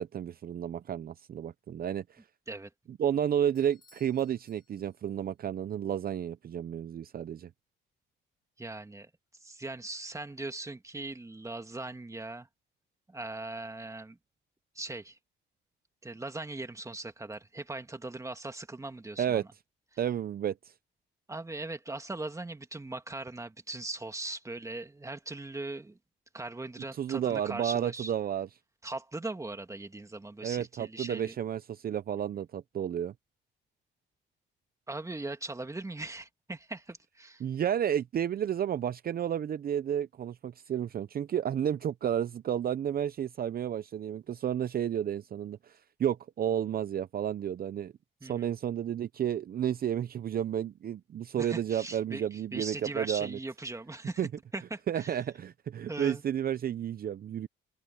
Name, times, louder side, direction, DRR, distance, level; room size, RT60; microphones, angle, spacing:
voice 1, 0.0-2.2 2.9-7.5 19.2-19.4 20.0-20.7 26.9-28.5 30.4-33.1 37.4-47.9 48.2-53.4 54.2-54.3 54.9-57.5, right 9 dB, 50° right, 0.7 m, -31 dB
Bell / Doorbell, 3.5-5.3, left 3 dB, 20° left, 5.6 m, -65 dB
voice 2, 8.6-9.1 9.4-12.5 13.1-14.2 14.7-15.2 16.0-19.5 21.3-26.0 26.3-28.1 28.8-31.3 34.9-37.4 48.2-48.5 51.4-54.3 54.5-55.1 55.9-56.2, right 2 dB, 15° right, 2.2 m, -40 dB
cardioid pair, 90°, 20 cm